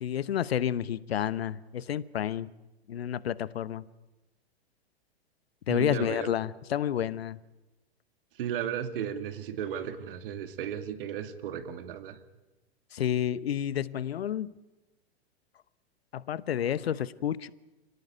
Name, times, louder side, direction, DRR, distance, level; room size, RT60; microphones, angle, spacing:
voice 1, 0.0-2.5 2.9-3.9 5.7-7.4 12.9-14.5 16.1-17.5, left 10 dB, 70° left, 1.0 m, -30 dB
voice 2, 5.7-6.3 8.3-12.2, right 9 dB, 55° right, 2.4 m, -35 dB
28.5 x 18.0 x 9.4 m
figure-of-eight pair, 100°, 32 cm